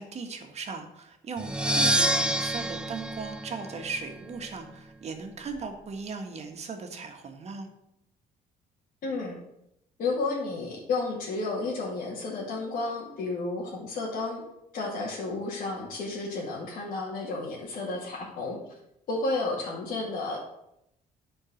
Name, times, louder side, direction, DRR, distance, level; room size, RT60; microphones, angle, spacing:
voice 1, 0.0-7.7, right 4 dB, 45° right, 5 dB, 1.6 m, -38 dB
sound 1, 1.4-4.2, right 1 dB, 5° right, 0.4 m, -27 dB
voice 2, 9.0-9.4 10.0-14.4 14.7-18.8 19.1-20.4, left 3 dB, 60° left, -6 dB, 2.2 m, -32 dB
9.9 x 4.7 x 6.4 m, 0.82 s
cardioid pair, 110°, 16 cm